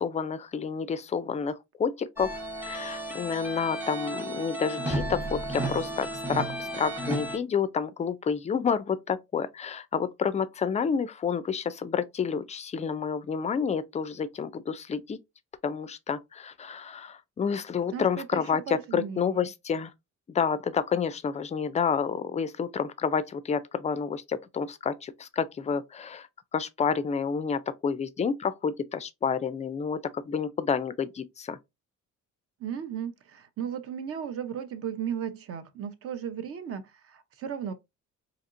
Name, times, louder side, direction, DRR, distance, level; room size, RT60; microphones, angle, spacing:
voice 1, 0.0-15.2 15.6-19.9 20.3-31.6, left 6 dB, 25° left, 0.3 m, -29 dB
sound 1, 2.2-7.4, right 1 dB, 5° right, 0.9 m, -33 dB
voice 2, 17.9-19.5 32.6-37.7, right 8 dB, 50° right, 0.7 m, -35 dB
4.2 x 2.9 x 2.5 m
cardioid pair, 130°, 30 cm